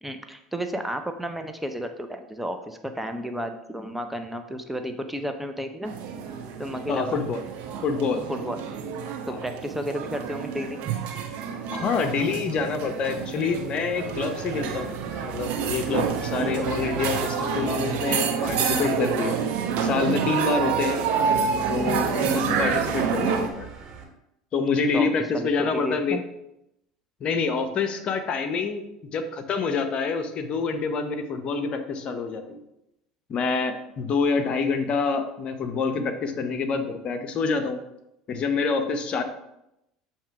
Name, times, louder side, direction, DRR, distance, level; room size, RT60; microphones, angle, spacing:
voice 1, 0.0-5.9 6.6-7.2 8.3-8.6 9.3-10.8 16.4-16.6 24.9-25.1 25.3-26.2, equal, 5° right, 6 dB, 0.6 m, -32 dB
sound 1, 5.8-23.5, right 6 dB, 60° right, 0.8 m, -28 dB
voice 2, 6.9-7.4 7.8-8.2 9.3-9.4 11.7-14.9 15.2-19.4 19.8-21.0 21.7-23.7 24.5-26.2 27.2-32.6 33.3-37.8 38.3-39.2, left 4 dB, 45° left, 7 dB, 0.7 m, -27 dB
sound 2, 14.2-24.0, right 6 dB, 35° right, 1.9 m, -45 dB
7.2 x 2.9 x 4.6 m, 0.85 s
hypercardioid pair, 75°, 2 cm